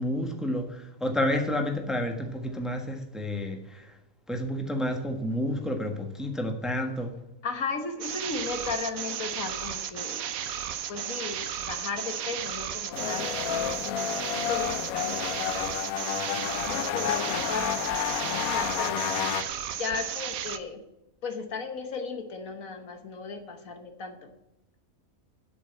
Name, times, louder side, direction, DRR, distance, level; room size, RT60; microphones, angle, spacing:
voice 1, 0.0-3.9 4.3-7.1, left 1 dB, ahead, 3 dB, 1.3 m, -30 dB
voice 2, 7.4-10.2 10.9-13.3 13.8-15.7 16.4-17.9 18.5-19.1 19.8-20.8 21.2-24.3, left 4 dB, 75° left, 6 dB, 1.7 m, -35 dB
sound 1, 8.0-20.6, right 9 dB, 75° right, 1.2 m, -34 dB
sound 2, 12.9-19.4, left 10 dB, 90° left, 1.2 m, -30 dB
8.5 x 6.7 x 8.4 m, 0.95 s
omnidirectional pair, 1.5 m